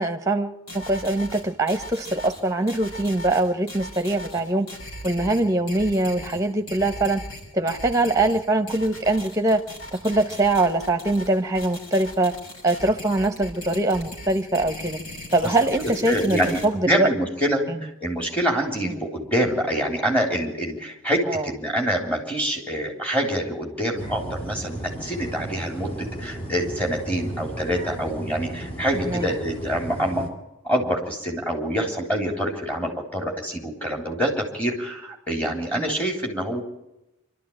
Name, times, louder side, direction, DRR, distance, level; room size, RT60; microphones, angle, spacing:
voice 1, 0.0-4.7 5.0-7.2 7.5-9.6 9.9-12.3 12.6-15.0 15.3-17.1 17.7-17.8 18.8-19.0 21.3-21.5 29.0-29.3 35.8-36.0, right 2 dB, 15° right, 7 dB, 1.3 m, -23 dB
sound 1, 0.7-16.6, left 1 dB, 75° left, 6.5 m, -38 dB
voice 2, 16.1-30.3 30.6-36.6, equal, 5° left, 1 dB, 3.8 m, -26 dB
sound 2, 24.0-30.3, right 1 dB, 25° left, 3.3 m, -34 dB
25.0 x 13.0 x 8.8 m, 0.93 s
head